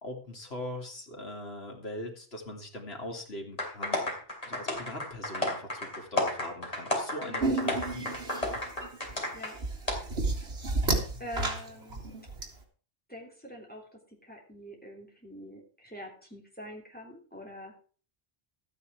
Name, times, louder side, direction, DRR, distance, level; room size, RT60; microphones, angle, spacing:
voice 1, 0.0-8.2, left 1 dB, 80° left, 1 dB, 2.9 m, -41 dB
sound 1, 3.6-9.5 9.9-10.0, left 1 dB, 35° left, 3.5 m, -32 dB
voice 2, 7.2-7.7 9.3-9.6 11.2-12.0 13.1-17.7, equal, 10° left, 0 dB, 3.4 m, -45 dB
sound 2, 7.4-12.4, right 3 dB, 85° right, 2.4 m, -31 dB
13.0 x 9.3 x 4.8 m, 0.41 s
omnidirectional pair, 1.0 m